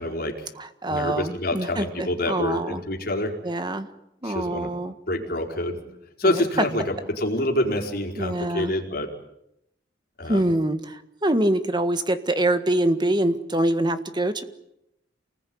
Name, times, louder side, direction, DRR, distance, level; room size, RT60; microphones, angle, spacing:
voice 1, 0.0-0.5 0.9-3.3 4.2-4.7 5.1-5.8 6.2-9.1 10.2-10.4, left 1 dB, 55° left, 2 dB, 4.7 m, -27 dB
voice 2, 0.6-2.8 3.4-3.9 4.2-4.9 6.2-6.7 8.2-8.7 10.2-14.4, right 1 dB, 25° right, 10 dB, 1.7 m, -25 dB
28.5 x 20.0 x 9.5 m, 0.82 s
head